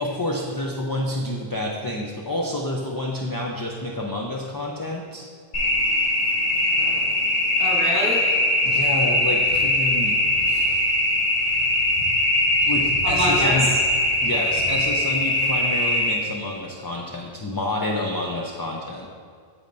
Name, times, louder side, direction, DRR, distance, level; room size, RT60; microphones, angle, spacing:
voice 1, 0.0-5.3 8.6-10.8 11.5-11.7 12.7-13.7 14.2-19.1, left 1 dB, 30° left, -1 dB, 0.4 m, -29 dB
sound 1, 5.5-16.1, left 1 dB, 50° left, 1.6 m, -21 dB
voice 2, 7.6-8.2 13.0-13.8, equal, 15° right, -6 dB, 2.1 m, -25 dB
8.6 x 7.8 x 2.6 m, 2.1 s
omnidirectional pair, 1.1 m